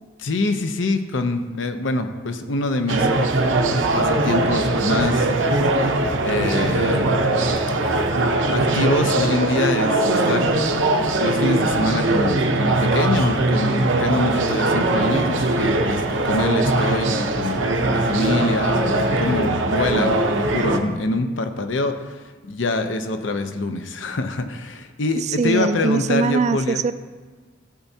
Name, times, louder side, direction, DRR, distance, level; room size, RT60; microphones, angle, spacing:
voice 1, 0.2-3.1 3.9-5.3 6.2-7.1 8.5-10.4 10.9-26.8, left 2 dB, 70° left, 7 dB, 0.7 m, -25 dB
sound 1, 2.9-20.8, right 2 dB, 70° right, 0.8 m, -21 dB
voice 2, 25.2-26.9, right 4 dB, 35° right, 12 dB, 0.4 m, -21 dB
14.0 x 7.1 x 2.8 m, 1.4 s
head